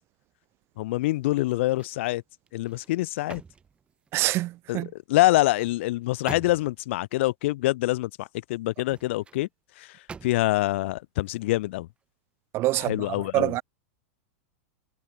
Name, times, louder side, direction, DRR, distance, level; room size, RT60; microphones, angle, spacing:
voice 1, 0.8-2.2 2.5-3.4 4.7-9.5 9.8-11.9 12.7-13.5, left 18 dB, 65° left, 0.7 m, -25 dB
sound 1, 1.3-2.1 2.5-4.4 5.2-6.9 8.7-9.4 10.1-10.7 11.2-11.4, right 5 dB, 15° right, 5.4 m, -46 dB
voice 2, 4.1-4.9 12.5-13.0 13.3-13.6, right 17 dB, 35° right, 1.2 m, -25 dB
supercardioid pair, 145°, 7 cm